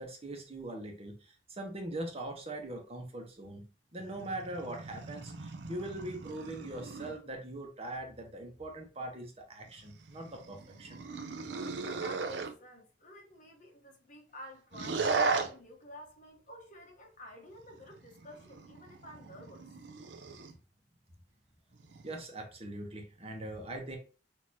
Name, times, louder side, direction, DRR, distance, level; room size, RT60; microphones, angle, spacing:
voice 1, 0.0-3.6 3.9-11.0 22.0-24.0, right 1 dB, 35° right, 1.1 m, -41 dB
sound 1, 4.0-7.2 9.7-12.5 14.7-15.5 17.5-20.6 21.7-22.2, right 4 dB, 75° right, 0.6 m, -37 dB
voice 2, 11.8-19.6, left 1 dB, 45° left, 1.2 m, -51 dB
6.5 x 2.9 x 2.8 m
head